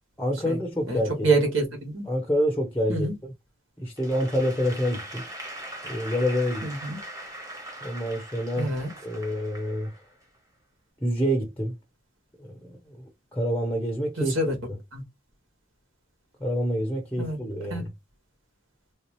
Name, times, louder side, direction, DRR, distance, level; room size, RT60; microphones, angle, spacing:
voice 1, 0.2-1.3 2.1-3.3 3.8-5.2 5.8-6.7 7.8-8.7 9.0-9.9 11.0-11.7 12.4-12.5 12.9-14.3 14.7-14.8 16.4-17.9, equal, 10° left, 0.6 m, -27 dB
voice 2, 0.9-2.1 2.9-3.1 6.6-7.0 8.6-8.9 14.2-14.5 14.9-15.0 17.2-17.4 17.7-17.8, right 2 dB, 85° right, 1.5 m, -26 dB
Applause / Crowd, 4.0-10.4, right 1 dB, 15° right, 1.0 m, -41 dB
3.3 x 2.8 x 3.0 m
head